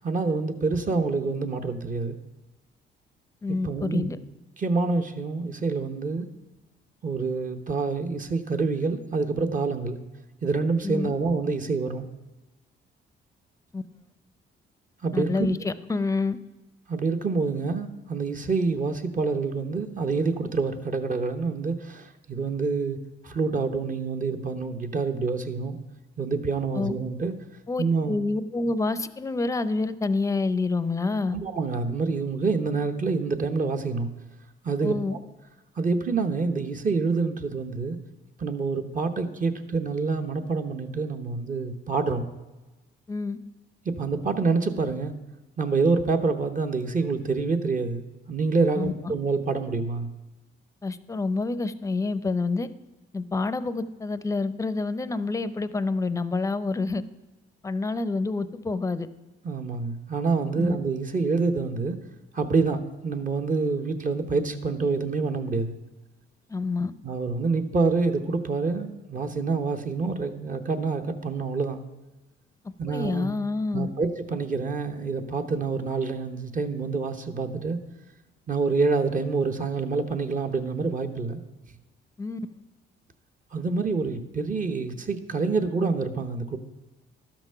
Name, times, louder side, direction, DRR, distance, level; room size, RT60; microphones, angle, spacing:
voice 1, 0.0-2.2 3.5-4.1 4.6-6.3 7.0-10.0 10.4-12.1 15.0-15.5 16.9-23.0 23.2-25.8 26.2-27.3 27.8-28.2 31.3-34.1 34.6-35.2 35.8-38.0 38.4-42.3 43.8-45.1 45.6-50.1 59.4-62.0 62.3-65.7 67.0-71.8 72.8-73.3 73.7-77.8 78.5-81.4 83.5-86.6, right 4 dB, 40° right, 6 dB, 1.0 m, -27 dB
voice 2, 3.4-4.2 10.8-11.1 13.7-13.8 15.1-16.4 26.7-27.0 27.7-31.4 34.8-35.2 43.1-43.4 48.7-49.1 50.8-52.7 53.1-57.0 57.6-59.1 60.6-60.8 66.5-66.9 72.9-73.9 82.2-82.4, left 3 dB, 15° left, 13 dB, 0.5 m, -27 dB
12.0 x 6.0 x 5.6 m, 1.1 s
cardioid pair, 90°, 20 cm